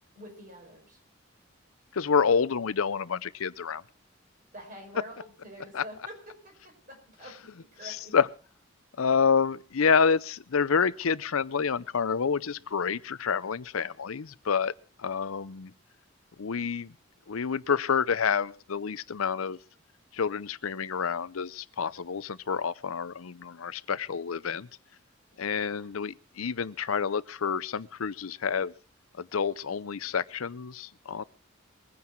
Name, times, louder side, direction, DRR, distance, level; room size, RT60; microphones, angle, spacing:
voice 1, 0.2-1.0 4.5-8.2 25.3-25.9, right 1 dB, 40° right, 5.5 m, -47 dB
voice 2, 1.9-3.8 5.7-5.8 7.8-8.3 9.0-14.7 15.0-15.7 16.4-16.9 17.3-19.6 20.1-24.7 25.4-28.7 29.2-31.2, left 6 dB, 90° left, 0.6 m, -28 dB
22.5 x 9.6 x 4.5 m
head